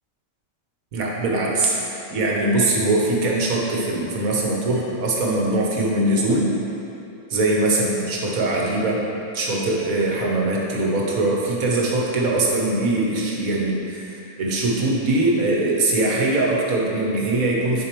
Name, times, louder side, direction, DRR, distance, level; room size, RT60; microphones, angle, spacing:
voice 1, 0.9-1.8 2.1-6.5 7.3-9.0 9.3-17.8, right 2 dB, 80° right, -2 dB, 1.4 m, -22 dB
9.9 x 4.5 x 3.0 m, 2.8 s
omnidirectional pair, 1.5 m